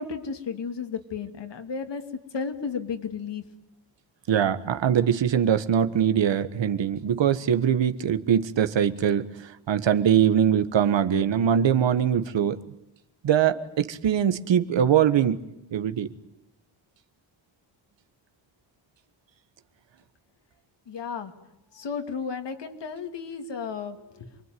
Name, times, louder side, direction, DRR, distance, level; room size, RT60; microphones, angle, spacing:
voice 1, 0.0-2.0 2.3-3.4 20.9-21.3 21.7-24.3, left 5 dB, 65° left, 6 dB, 2.8 m, -33 dB
voice 2, 4.3-12.6 13.2-15.4 15.7-16.1, right 9 dB, 70° right, 10 dB, 1.6 m, -22 dB
28.0 x 22.5 x 9.4 m, 0.83 s
wide cardioid pair, 140°, 46 cm